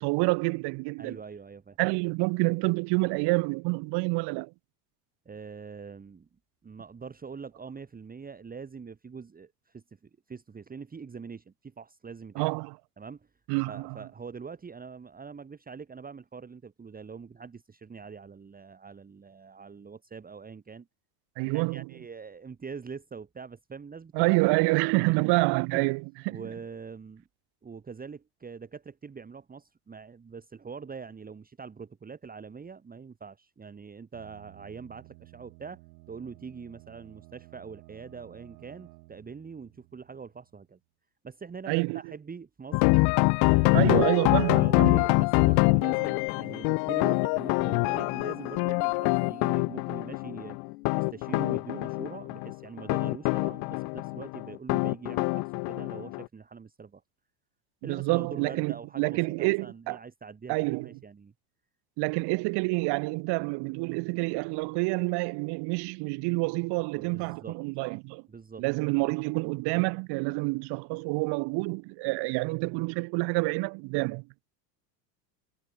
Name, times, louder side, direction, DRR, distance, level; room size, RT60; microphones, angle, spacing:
voice 1, 0.0-1.2 1.8-4.5 12.4-12.8 13.5-14.0 21.4-21.9 24.1-26.4 41.7-42.0 43.7-45.0 57.8-60.0 60.5-60.9 62.0-68.2 68.6-74.2, right 27 dB, 55° right, 0.8 m, -28 dB
voice 2, 1.0-1.8 5.3-6.3 6.6-12.5 13.0-13.3 13.6-20.9 21.4-24.3 24.9-25.2 25.7-25.9 26.3-27.2 27.6-35.8 36.1-40.8 41.2-42.9 43.5-43.9 44.5-50.6 50.9-57.0 57.8-61.3 67.0-67.6 68.3-68.6, right 5 dB, 15° right, 1.7 m, -43 dB
sound 1, 34.1-40.7, right 24 dB, 75° right, 4.1 m, -54 dB
sound 2, 42.7-56.3, left 32 dB, 55° left, 0.5 m, -25 dB
sound 3, 46.1-51.2, left 22 dB, 80° left, 2.3 m, -46 dB
supercardioid pair, 105°, 49 cm